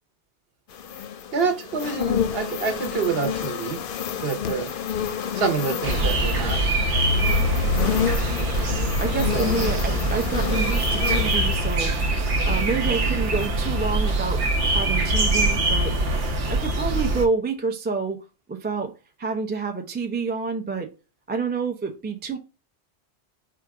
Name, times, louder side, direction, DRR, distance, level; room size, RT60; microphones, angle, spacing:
sound 1, 0.7-12.9 13.3-13.5, left 8 dB, 60° left, 0.6 m, -30 dB
voice 1, 1.3-3.8 4.2-4.7 5.3-6.6 9.3-9.5, right 5 dB, 60° right, 1.0 m, -27 dB
sound 2, 5.8-17.3, right 1 dB, 85° right, 1.1 m, -23 dB
voice 2, 9.0-12.0 12.4-14.4 14.7-16.0 16.5-18.2 18.5-18.9 19.2-20.9 21.3-22.4, right 4 dB, 15° right, 0.3 m, -28 dB
4.7 x 2.5 x 4.6 m
omnidirectional pair, 1.2 m